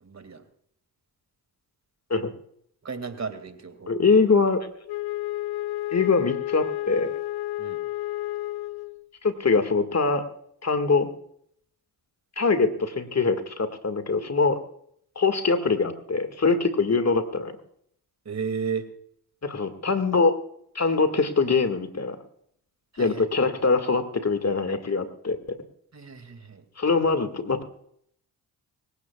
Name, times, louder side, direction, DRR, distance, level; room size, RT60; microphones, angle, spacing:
voice 1, 0.0-0.4 2.8-4.0 7.6-7.8 18.2-18.9 22.9-23.3 25.9-26.6, right 6 dB, 35° right, 9 dB, 2.3 m, -33 dB
voice 2, 3.9-4.7 5.9-7.1 9.2-10.2 10.6-11.1 12.4-14.6 15.2-17.5 19.4-20.4 20.8-22.2 23.0-25.4 26.8-27.6, left 4 dB, 35° left, 9 dB, 1.9 m, -23 dB
Wind instrument woodwind instrument, 4.9-9.1, left 16 dB, 60° left, 0.6 m, -31 dB
25.0 x 15.5 x 2.4 m, 0.69 s
hypercardioid pair, 40°, 44 cm